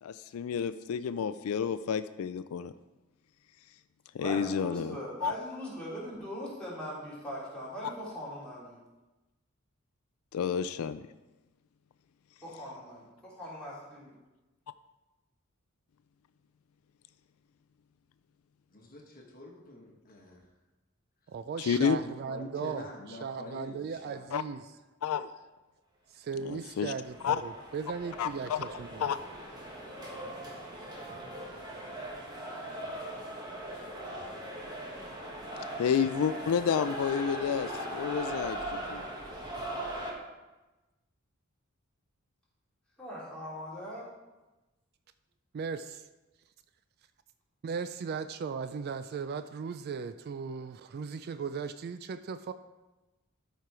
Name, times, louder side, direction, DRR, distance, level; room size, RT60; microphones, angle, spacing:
voice 1, 0.0-2.7 4.1-5.3 10.3-11.0 21.6-22.0 24.3-24.4 25.0-25.3 26.4-26.9 27.2-27.4 28.2-28.6 29.0-29.2 35.8-39.0, left 7 dB, 80° left, 13 dB, 0.3 m, -30 dB
voice 2, 4.2-8.8 12.4-14.1 43.0-44.1, equal, 5° left, -9 dB, 3.3 m, -40 dB
voice 3, 18.7-20.4 21.7-24.3, left 2 dB, 40° left, 0 dB, 1.3 m, -46 dB
voice 4, 21.3-24.6 26.1-29.1 45.5-46.1 47.6-52.5, right 5 dB, 45° right, 11 dB, 0.3 m, -37 dB
sound 1, 26.5-40.1, right 1 dB, 20° right, 1.5 m, -40 dB
13.0 x 4.5 x 4.7 m, 1.1 s
head